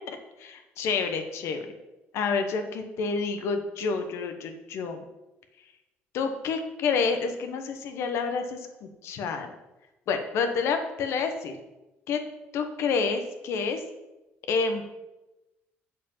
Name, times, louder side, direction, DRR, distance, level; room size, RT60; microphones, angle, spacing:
voice 1, 0.1-1.7 2.1-5.0 6.1-9.5 10.1-11.5 12.1-12.2 12.5-13.8 14.5-14.8, left 5 dB, 65° left, 6 dB, 1.1 m, -29 dB
8.2 x 4.6 x 7.2 m, 1.0 s
cardioid pair, 145°, 5 cm